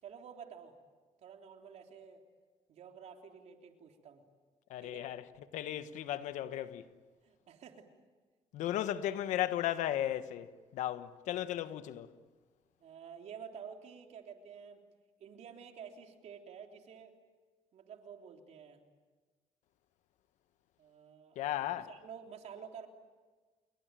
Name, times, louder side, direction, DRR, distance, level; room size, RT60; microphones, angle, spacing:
voice 1, 0.0-0.8 1.2-2.2 2.7-4.2 4.8-5.1 7.2-7.9 12.8-14.8 15.2-17.2 17.7-18.8 20.8-21.4 21.8-22.9, right 7 dB, 65° right, 3.6 m, -50 dB
voice 2, 4.7-5.3 5.5-6.8 8.5-12.1 21.3-21.9, left 12 dB, 80° left, 1.3 m, -35 dB
29.0 x 22.0 x 9.2 m
cardioid pair, 95°, 12 cm